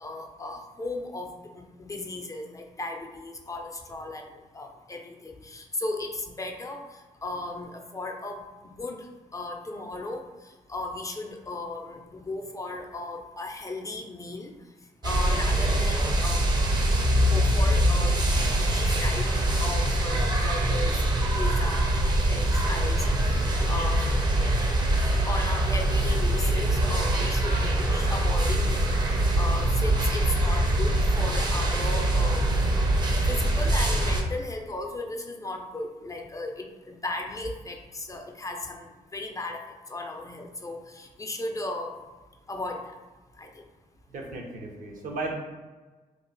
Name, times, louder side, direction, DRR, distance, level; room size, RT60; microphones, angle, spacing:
voice 1, 0.0-9.1 9.3-10.3 10.7-14.5 15.0-16.5 16.9-17.0 17.3-18.2 18.6-19.3 19.6-21.0 21.3-21.9 22.3-24.3 25.3-28.9 29.4-32.5 33.2-42.0 42.5-43.0 43.4-43.6, left 2 dB, 25° left, 3 dB, 0.4 m, -36 dB
sound 1, 15.0-34.2, right 1 dB, 30° right, 0.6 m, -23 dB
voice 2, 44.1-45.3, right 2 dB, 70° right, 0 dB, 0.8 m, -35 dB
2.9 x 2.4 x 3.8 m, 1.3 s
cardioid pair, 85°, 14 cm